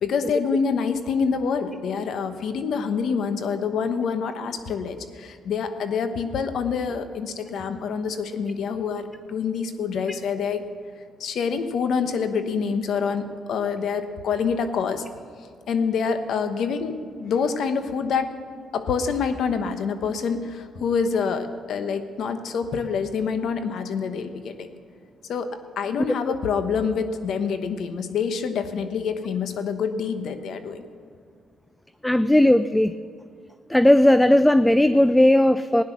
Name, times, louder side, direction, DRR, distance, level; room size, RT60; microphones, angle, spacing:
voice 1, 0.0-10.6 11.2-15.0 15.7-18.3 18.7-24.7 25.3-30.8, left 6 dB, 70° left, 9 dB, 1.1 m, -26 dB
voice 2, 32.0-32.9 33.7-35.8, left 1 dB, 10° left, 13 dB, 0.3 m, -17 dB
16.0 x 9.9 x 6.1 m, 2.1 s
cardioid pair, 90°, 0 cm